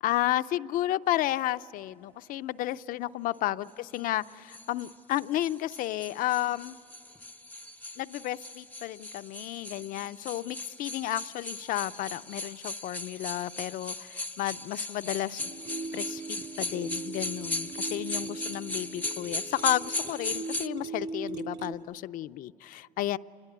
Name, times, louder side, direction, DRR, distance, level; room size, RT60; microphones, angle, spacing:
voice 1, 0.0-6.7 8.0-15.4 15.9-23.2, left 14 dB, 80° left, 13 dB, 0.5 m, -32 dB
sound 1, 3.9-20.7, left 2 dB, 10° left, 0.6 m, -38 dB
sound 2, 15.4-21.7, right 4 dB, 50° right, 2.3 m, -39 dB
28.0 x 21.5 x 9.4 m, 2.8 s
cardioid pair, 145°, 14 cm